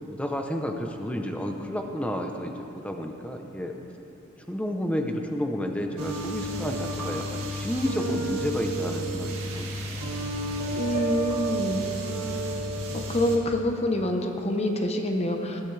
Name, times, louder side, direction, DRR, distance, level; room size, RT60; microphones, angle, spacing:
voice 1, 0.1-3.7 4.5-10.2 12.9-13.2, equal, 5° left, 3 dB, 0.8 m, -31 dB
sound 1, 6.0-13.4, right 1 dB, 80° right, 2.0 m, -31 dB
voice 2, 10.8-11.9 13.1-15.6, left 1 dB, 30° left, 3 dB, 1.0 m, -26 dB
20.0 x 12.5 x 3.4 m, 2.9 s
head